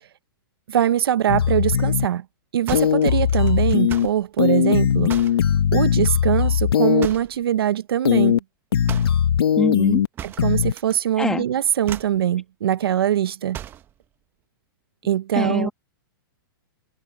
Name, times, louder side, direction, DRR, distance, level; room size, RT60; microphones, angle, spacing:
voice 1, 0.7-2.2 2.5-5.1 5.7-8.4 10.2-13.6 15.0-15.7, right 10 dB, 85° right, 0.7 m, -22 dB
sound 1, 1.3-2.1 2.7-4.1 4.4-7.1 8.0-8.4 8.7-10.1 10.4-10.7, left 9 dB, 90° left, 1.0 m, -19 dB
sound 2, 2.7-4.2 5.1-5.5 7.0-7.4 8.9-9.2 10.2-10.9 11.2-11.5 11.8-12.2 13.5-13.9, right 11 dB, 15° right, 0.9 m, -36 dB
voice 2, 9.6-10.0 11.2-11.4 15.3-15.7, left 2 dB, 5° left, 1.3 m, -23 dB
hypercardioid pair, 160°, 12 cm